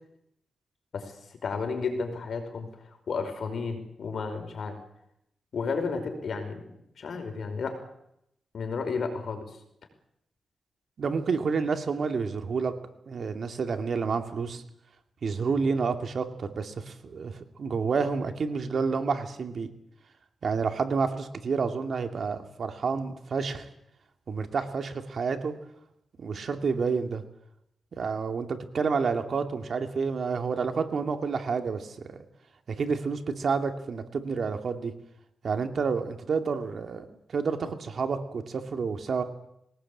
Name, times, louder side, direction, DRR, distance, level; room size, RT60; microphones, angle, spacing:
voice 1, 0.9-2.7 3.1-4.8 5.5-7.8 8.5-9.6, left 4 dB, 65° left, 6 dB, 5.4 m, -32 dB
voice 2, 11.0-12.7 13.1-14.6 15.2-19.7 20.4-23.7 24.3-25.5 26.2-27.2 28.0-32.2 32.7-34.9 35.4-37.0 37.3-39.2, right 5 dB, 60° right, 6 dB, 2.5 m, -29 dB
22.0 x 18.5 x 8.7 m, 0.77 s
cardioid pair, 95°, 0 cm